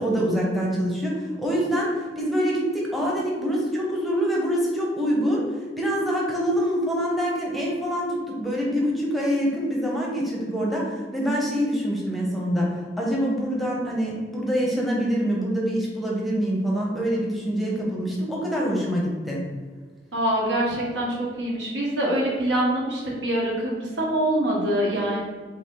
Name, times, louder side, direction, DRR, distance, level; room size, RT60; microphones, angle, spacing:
voice 1, 0.0-5.5 5.8-19.5, equal, ahead, -3 dB, 0.8 m, -25 dB
voice 2, 20.1-25.2, right 1 dB, 75° right, -4 dB, 1.2 m, -24 dB
4.3 x 2.8 x 3.6 m, 1.5 s
head